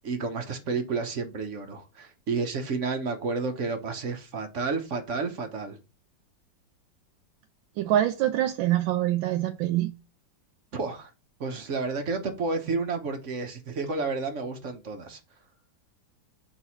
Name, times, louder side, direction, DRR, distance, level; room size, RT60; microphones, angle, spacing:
voice 1, 0.0-5.8 10.7-11.1 11.4-15.2, right 4 dB, 50° right, 1.0 m, -31 dB
voice 2, 7.8-9.9, right 13 dB, 85° right, 1.3 m, -25 dB
4.7 x 4.0 x 5.6 m
omnidirectional pair, 2.0 m